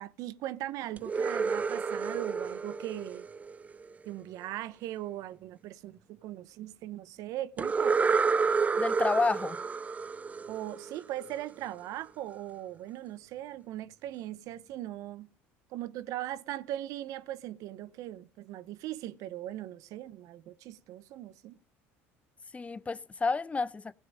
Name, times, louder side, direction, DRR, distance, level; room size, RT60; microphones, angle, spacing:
voice 1, 0.0-3.3 4.0-8.0 10.5-15.3 15.7-21.6, right 13 dB, 65° right, 1.0 m, -39 dB
sound 1, 1.0-3.9 7.6-11.3, right 5 dB, 25° right, 0.5 m, -30 dB
voice 2, 8.8-9.6 22.5-23.9, left 4 dB, 20° left, 0.6 m, -30 dB
16.0 x 5.7 x 8.9 m
supercardioid pair, 85°, 6 cm